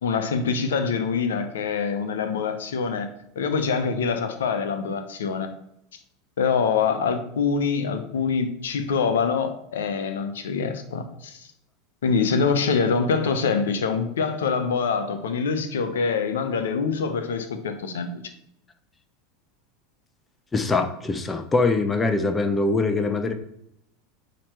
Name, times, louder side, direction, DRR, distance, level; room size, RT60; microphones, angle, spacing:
voice 1, 0.0-3.1 3.4-5.5 6.4-11.5 12.0-18.1, left 5 dB, 75° left, 8 dB, 0.9 m, -25 dB
voice 2, 20.5-23.3, left 3 dB, 20° left, 7 dB, 0.8 m, -23 dB
8.7 x 3.1 x 4.5 m, 0.78 s
hypercardioid pair, 85°, 0 cm